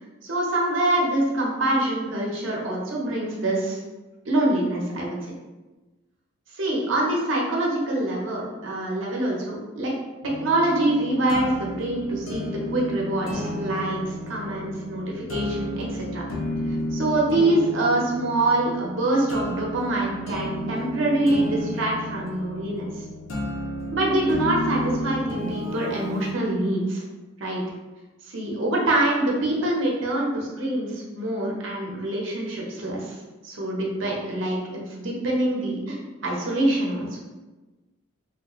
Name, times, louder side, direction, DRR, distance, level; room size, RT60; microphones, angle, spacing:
voice 1, 0.2-3.8 4.2-5.3 6.5-10.0 10.2-16.2 16.7-23.0 23.9-27.0 27.4-27.6 28.2-33.2 33.4-37.2, right 1 dB, 75° right, -3 dB, 0.8 m, -25 dB
sound 1, 10.2-26.3, left 1 dB, 80° left, 0.6 m, -32 dB
3.1 x 2.5 x 3.0 m, 1.2 s
head